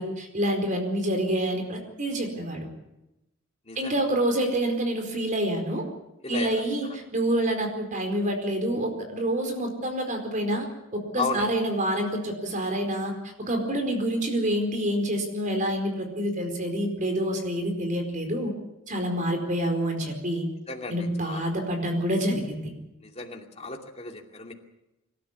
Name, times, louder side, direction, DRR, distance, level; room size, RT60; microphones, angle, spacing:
voice 1, 0.0-2.7 3.8-5.8 6.3-13.1 13.5-18.5 18.9-20.4 20.9-22.7, right 1 dB, 40° right, 4 dB, 4.6 m, -27 dB
voice 2, 6.2-6.6 11.1-11.5 20.7-21.4 23.0-24.5, left 3 dB, 30° left, 2 dB, 2.6 m, -34 dB
25.5 x 12.5 x 9.7 m, 0.94 s
head